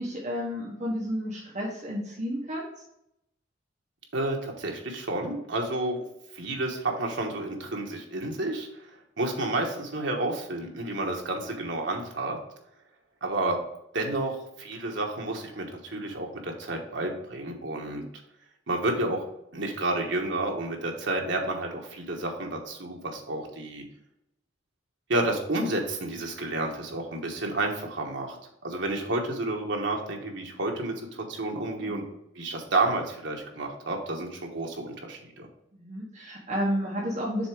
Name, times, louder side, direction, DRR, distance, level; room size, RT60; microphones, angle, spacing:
voice 1, 0.0-2.6 17.9-18.0 31.8-32.0 35.7-37.5, equal, 40° right, -2 dB, 1.2 m, -31 dB
voice 2, 4.1-6.0 6.3-8.9 9.2-12.4 13.2-13.6 13.9-18.0 18.7-19.3 19.5-23.8 25.1-28.4 28.6-32.0 32.3-35.5, right 2 dB, 65° right, 1 dB, 1.3 m, -30 dB
6.9 x 3.5 x 4.8 m, 0.80 s
head